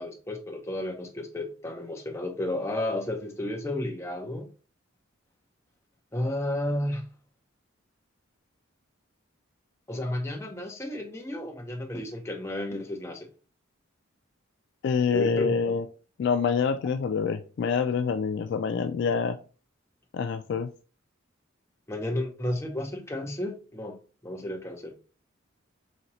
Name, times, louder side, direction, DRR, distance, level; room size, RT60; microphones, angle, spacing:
voice 1, 0.0-4.5 6.1-7.0 9.9-13.3 15.1-15.7 21.9-24.0 24.2-25.0, left 1 dB, 15° left, 0.7 m, -32 dB
voice 2, 14.8-15.8 16.2-19.4 20.1-20.7, left 6 dB, 60° left, 0.3 m, -26 dB
4.0 x 2.8 x 3.0 m
head